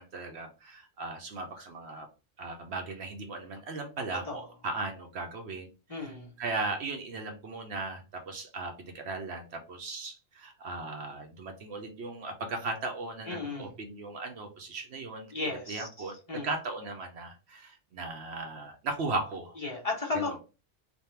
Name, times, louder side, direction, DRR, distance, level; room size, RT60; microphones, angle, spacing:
voice 1, 0.0-2.1 2.4-15.3 15.7-19.5 20.1-20.4, right 3 dB, 60° right, 4 dB, 0.9 m, -37 dB
voice 2, 5.9-6.3 13.3-13.7 15.3-16.5 19.6-20.4, left 3 dB, 30° left, -2 dB, 1.0 m, -35 dB
3.5 x 2.3 x 4.3 m, 0.32 s
omnidirectional pair, 1.3 m